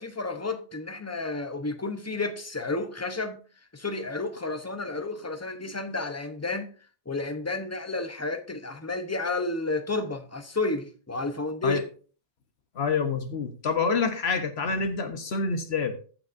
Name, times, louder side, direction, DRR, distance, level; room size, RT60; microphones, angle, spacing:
voice 1, 0.0-3.4 3.7-6.7 7.1-11.8, left 3 dB, 15° left, 0.7 m, -31 dB
voice 2, 12.7-15.9, left 5 dB, 65° left, 1.3 m, -27 dB
15.0 x 6.1 x 2.6 m
omnidirectional pair, 1.2 m